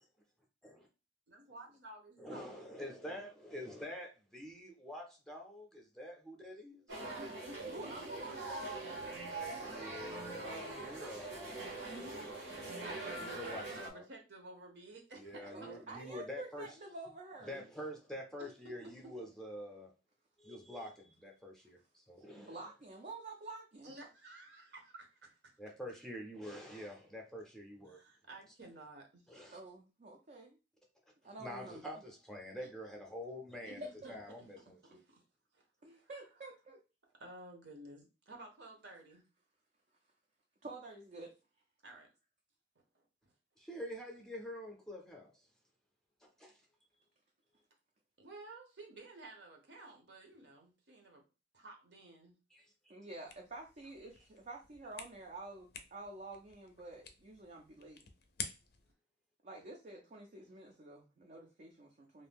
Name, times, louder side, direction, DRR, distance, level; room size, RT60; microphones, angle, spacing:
voice 1, 1.3-2.6 7.2-7.6 13.0-15.8 18.4-18.5 18.8-18.9 23.8-25.6 27.9-29.2 32.6-32.7 33.6-34.5 34.8-35.2 35.5-36.1 37.2-39.2 41.8-42.1 42.9-43.3 48.2-51.2 51.5-52.4, right 2 dB, 70° right, 0.8 m, -53 dB
voice 2, 2.2-6.9 9.6-12.0 13.2-14.0 15.1-16.7 17.4-19.9 20.4-22.6 25.6-28.0 29.3-29.6 31.4-35.0 43.6-45.3 46.2-46.5 52.5-52.6, equal, 5° left, 0.6 m, -47 dB
sound 1, 6.9-13.9, right 2 dB, 85° right, 1.1 m, -43 dB
voice 3, 7.7-8.9 15.5-17.7 22.3-23.9 29.5-30.6 31.2-31.9 33.8-34.1 35.8-36.8 40.6-41.3 52.9-58.0 59.4-62.3, right 2 dB, 45° right, 0.4 m, -49 dB
sound 2, 53.2-58.9, left 6 dB, 55° left, 0.4 m, -50 dB
2.6 x 2.2 x 3.4 m
head